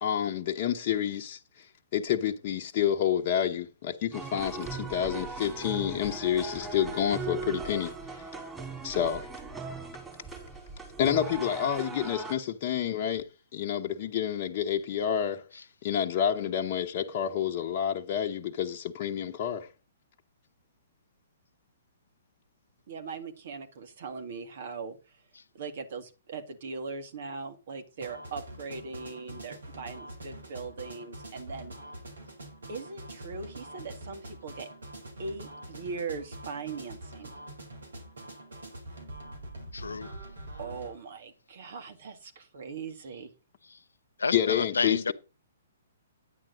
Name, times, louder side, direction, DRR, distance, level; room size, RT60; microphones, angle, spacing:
voice 1, 0.0-1.7 1.9-8.3 8.8-9.3 11.0-13.2 13.5-15.4 15.8-19.7 44.3-45.1, left 9 dB, 45° left, 1.0 m, -29 dB
sound 1, 4.1-12.3, right 4 dB, 10° right, 4.3 m, -39 dB
voice 2, 22.9-25.2 25.5-31.7 32.7-34.7 35.2-37.3 40.6-43.3, right 4 dB, 55° right, 2.1 m, -40 dB
sound 2, 28.0-40.9, right 1 dB, 75° right, 3.7 m, -45 dB
voice 3, 39.7-40.1 44.2-45.1, left 4 dB, 80° left, 0.6 m, -30 dB
10.0 x 8.9 x 4.0 m
figure-of-eight pair, 125°, 0 cm